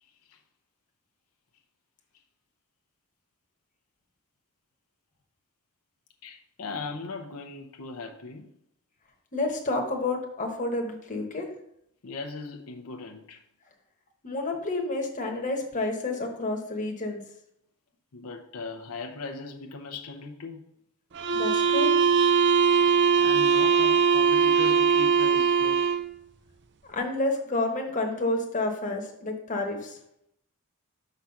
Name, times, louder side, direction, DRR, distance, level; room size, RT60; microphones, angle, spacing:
voice 1, 6.2-8.5 12.0-13.4 18.1-20.6 23.2-25.9, left 3 dB, 85° left, 0.8 m, -38 dB
voice 2, 9.3-11.5 14.2-17.2 21.3-21.9 26.9-29.9, left 2 dB, 35° left, 1.1 m, -29 dB
sound 1, 21.1-26.1, right 6 dB, 55° right, 0.5 m, -21 dB
5.9 x 4.0 x 5.8 m
head